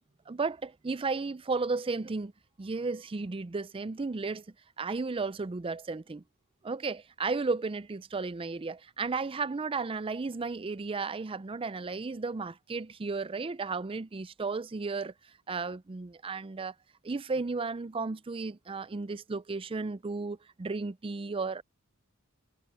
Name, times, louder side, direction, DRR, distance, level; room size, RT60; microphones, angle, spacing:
voice 1, 0.3-2.3 2.6-4.4 4.8-6.2 6.6-15.1 15.5-16.7 17.0-21.6, right 4 dB, 25° right, 0.4 m, -34 dB
head